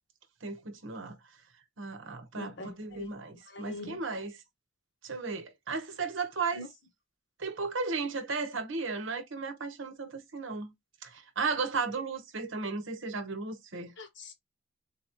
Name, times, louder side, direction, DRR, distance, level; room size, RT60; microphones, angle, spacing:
voice 1, 0.4-1.2 1.8-4.4 5.0-6.7 7.4-10.7 11.0-13.9, right 4 dB, 80° right, 1.0 m, -35 dB
voice 2, 2.3-3.2 3.5-4.0 6.5-6.7 14.0-14.3, left 2 dB, 65° left, 1.4 m, -43 dB
4.1 x 4.0 x 2.9 m
head